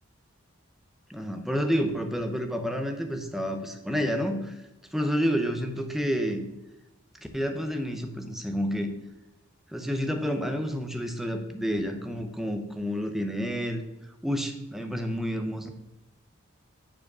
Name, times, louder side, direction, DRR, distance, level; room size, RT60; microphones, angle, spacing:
voice 1, 1.1-4.6 4.9-6.4 7.3-8.9 9.7-13.8 14.2-15.7, equal, ahead, 5 dB, 0.8 m, -29 dB
7.4 x 4.9 x 6.2 m, 0.98 s
head